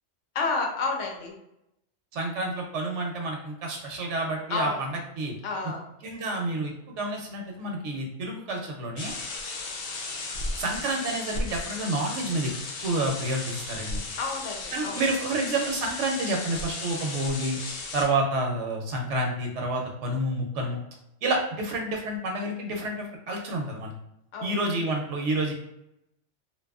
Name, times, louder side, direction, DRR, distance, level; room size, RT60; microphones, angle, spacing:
voice 1, 0.3-1.3 4.5-4.8 5.4-5.9 14.2-15.0 24.3-24.5, left 3 dB, 90° left, 1 dB, 0.9 m, -30 dB
voice 2, 2.1-5.3 6.0-9.1 10.6-12.5 12.8-14.0 14.7-17.6 17.9-20.8 21.2-23.9 24.4-25.5, right 2 dB, 80° right, 1 dB, 0.9 m, -29 dB
sound 1, 9.0-18.1, left 3 dB, 65° left, 0.7 m, -35 dB
2.8 x 2.2 x 2.3 m, 0.84 s
omnidirectional pair, 1.2 m